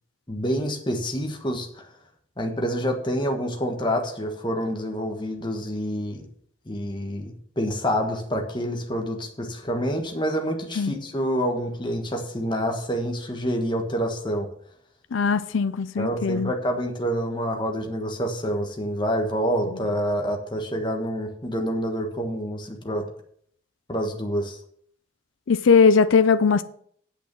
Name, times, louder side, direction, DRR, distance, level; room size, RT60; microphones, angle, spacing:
voice 1, 0.3-1.9 2.4-6.2 6.7-14.5 16.0-23.1 23.9-24.6, equal, 25° left, 1.4 m, -27 dB
voice 2, 15.1-16.5 25.5-26.6, left 5 dB, 70° left, 0.5 m, -19 dB
8.3 x 6.2 x 6.9 m
head